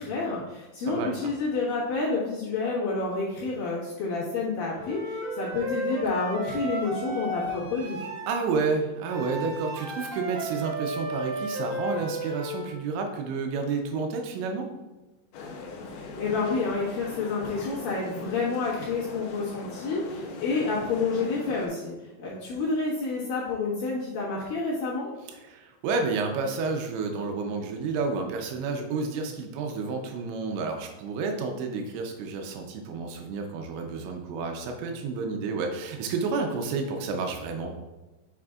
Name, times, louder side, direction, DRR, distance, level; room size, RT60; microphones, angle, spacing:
voice 1, 0.0-8.0 16.0-25.1, left 4 dB, 65° left, -8 dB, 2.3 m, -29 dB
voice 2, 0.9-1.3 8.3-14.7 25.4-37.7, right 4 dB, 80° right, 3 dB, 2.8 m, -30 dB
Wind instrument woodwind instrument, 4.8-8.3 9.1-12.8, right 1 dB, 60° right, 2.6 m, -34 dB
sound 1, 15.3-21.7, left 3 dB, 85° left, 2.2 m, -40 dB
7.5 x 5.7 x 2.4 m, 1.1 s
omnidirectional pair, 5.7 m